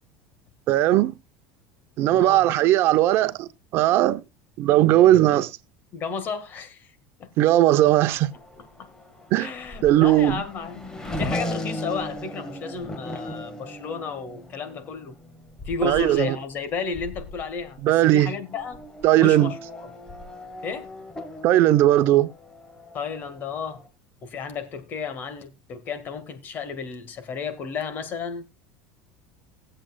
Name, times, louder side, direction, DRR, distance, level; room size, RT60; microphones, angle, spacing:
voice 1, 0.7-1.1 2.0-4.2 4.6-5.5 7.4-8.3 9.3-9.5 9.8-10.4 15.8-16.4 17.8-18.3 19.0-19.5 21.4-22.3, right 14 dB, 55° right, 0.8 m, -18 dB
voice 2, 2.1-2.6 5.9-7.3 8.6-8.9 9.4-10.9 11.2-15.2 15.7-18.8 19.2-19.9 20.6-20.9 22.9-23.8 24.2-28.5, left 5 dB, 40° left, 1.8 m, -33 dB
Race car auto racing / Accelerating revving vroom, 7.7-23.9, left 1 dB, 15° left, 1.7 m, -38 dB
19.5 x 7.6 x 2.3 m
supercardioid pair, 125°, 5 cm